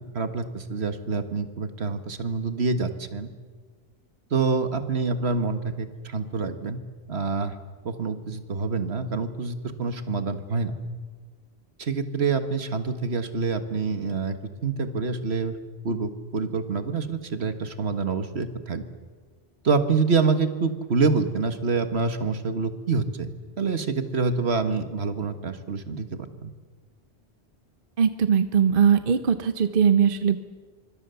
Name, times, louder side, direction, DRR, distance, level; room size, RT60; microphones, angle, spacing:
voice 1, 0.1-3.3 4.3-6.8 7.1-7.5 7.9-10.7 11.8-14.4 14.6-15.6 15.8-18.8 19.6-23.3 23.6-26.5, right 4 dB, 75° right, 9 dB, 1.8 m, -26 dB
voice 2, 28.0-30.4, right 7 dB, 55° right, 10 dB, 1.1 m, -20 dB
25.5 x 24.5 x 7.0 m, 1.5 s
omnidirectional pair, 1.1 m